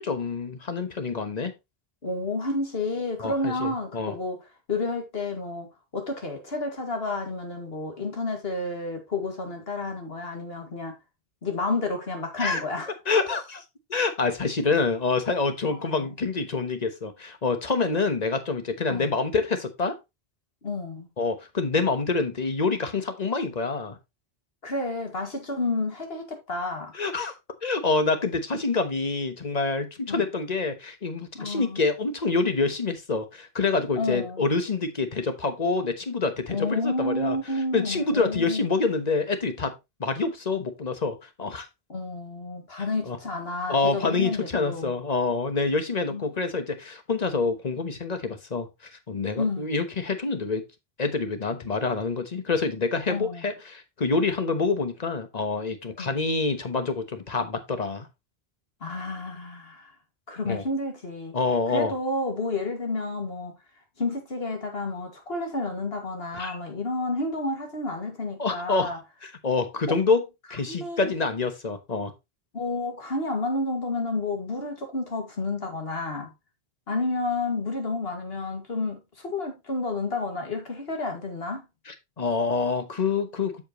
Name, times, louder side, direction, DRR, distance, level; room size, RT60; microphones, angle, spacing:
voice 1, 0.0-1.5 3.2-4.1 12.4-12.6 13.1-13.6 13.9-20.0 21.2-24.0 26.9-27.3 27.6-37.4 37.7-39.7 40.0-41.7 42.8-43.2 43.7-48.7 49.1-50.6 51.0-58.1 60.5-60.6 61.3-61.9 66.3-66.6 68.4-68.9 69.2-70.2 70.5-72.1 81.9-83.6, left 4 dB, 40° left, 1.2 m, -27 dB
voice 2, 2.0-4.4 4.7-5.7 5.9-11.0 11.4-12.9 15.7-16.1 18.9-19.1 20.6-21.1 24.6-26.9 30.1-30.2 31.3-31.8 34.0-34.5 36.5-38.7 41.9-44.9 46.1-46.3 49.4-49.7 53.1-53.5 56.0-56.1 58.8-59.9 60.3-61.4 61.7-63.5 64.0-69.0 69.9-70.0 70.7-71.1 72.5-76.3 76.9-81.6, left 2 dB, 70° left, 2.4 m, -30 dB
7.7 x 7.2 x 3.0 m
omnidirectional pair, 1.0 m